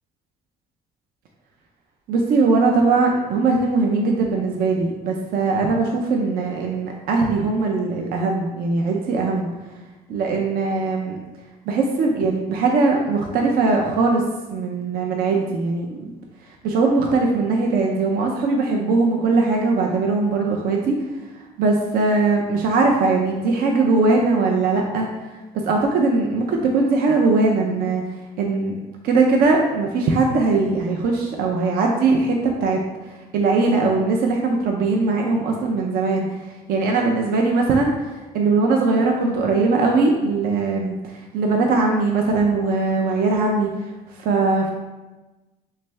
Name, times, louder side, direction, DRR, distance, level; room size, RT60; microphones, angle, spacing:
voice 1, 2.1-9.5 10.1-11.2 11.7-14.2 14.5-16.1 16.5-21.0 21.6-25.1 25.5-28.0 28.4-28.8 29.0-43.7 44.1-44.7, right 3 dB, 60° right, 0 dB, 0.5 m, -20 dB
3.4 x 3.2 x 3.2 m, 1.1 s
cardioid pair, 110°, 17 cm